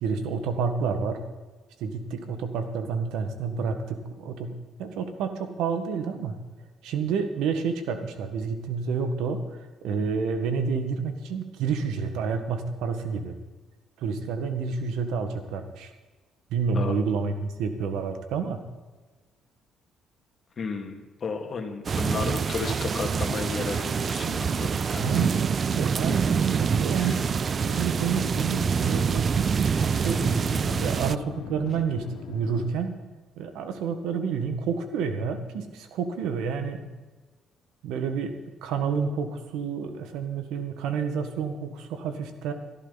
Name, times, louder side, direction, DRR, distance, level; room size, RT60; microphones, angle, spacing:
voice 1, 0.0-1.2 1.8-6.4 6.8-9.4 9.8-13.4 14.0-15.9 16.5-18.6 25.0-27.3 27.6-30.2 30.7-33.0 33.4-36.9 37.8-38.3 38.6-42.5, right 6 dB, 85° right, 7 dB, 1.7 m, -29 dB
voice 2, 20.6-25.1 27.0-27.2, left 4 dB, 40° left, 4 dB, 2.3 m, -33 dB
sound 1, 21.8-31.1, right 6 dB, 40° right, 0.3 m, -26 dB
sound 2, 26.7-32.7, left 7 dB, 80° left, 1.6 m, -41 dB
16.5 x 13.5 x 4.1 m, 1.3 s
cardioid pair, 105°, 0 cm